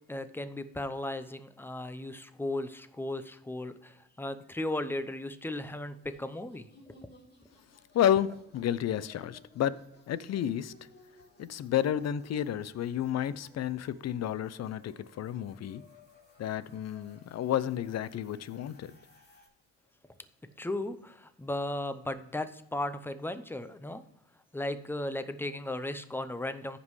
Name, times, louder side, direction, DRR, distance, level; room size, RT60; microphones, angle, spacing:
voice 1, 0.1-6.7 20.6-24.0 24.5-26.8, left 1 dB, 5° left, 0.7 m, -36 dB
sound 1, 5.9-19.5, left 2 dB, 35° left, 3.0 m, -60 dB
voice 2, 7.9-9.7 10.1-10.7 11.4-15.8 16.4-18.9, left 10 dB, 60° left, 0.6 m, -31 dB
15.0 x 5.3 x 3.2 m
cardioid pair, 90°, 30 cm